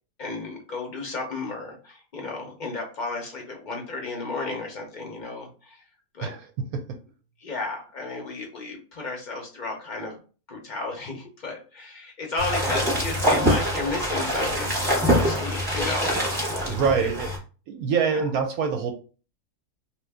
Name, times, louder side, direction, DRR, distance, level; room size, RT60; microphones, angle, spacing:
voice 1, 0.2-5.8 6.1-6.4 7.4-10.2 10.5-16.1 16.6-17.1 18.0-18.2, left 3 dB, 50° left, 1 dB, 0.5 m, -33 dB
voice 2, 6.2-6.8 16.6-17.3 17.7-18.9, right 6 dB, 70° right, 5 dB, 0.9 m, -25 dB
sound 1, 12.4-17.4, equal, 15° right, 0.8 m, -24 dB
2.9 x 2.5 x 3.4 m, 0.36 s
omnidirectional pair, 1.8 m